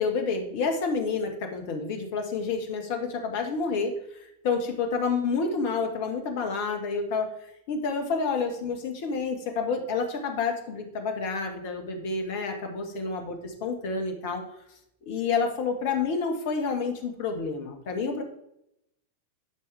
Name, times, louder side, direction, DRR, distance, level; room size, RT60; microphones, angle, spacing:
voice 1, 0.0-3.9 4.4-7.3 7.7-14.4 15.0-18.2, left 4 dB, 50° left, 4 dB, 1.7 m, -29 dB
12.0 x 5.4 x 3.5 m, 0.78 s
figure-of-eight pair, 90°, 0 cm